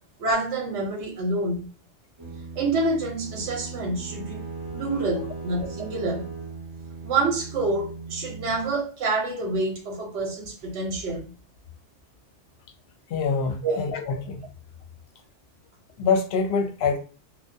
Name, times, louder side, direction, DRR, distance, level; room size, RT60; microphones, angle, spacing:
voice 1, 0.2-1.7 2.6-4.4 4.7-6.3 7.0-11.3 13.6-13.8, right 2 dB, 75° right, 0.9 m, -27 dB
sound 1, 2.2-8.7, right 3 dB, 25° right, 0.5 m, -38 dB
voice 2, 13.1-14.4 16.0-17.0, left 5 dB, 65° left, 0.8 m, -25 dB
2.2 x 2.2 x 2.6 m
omnidirectional pair, 1.2 m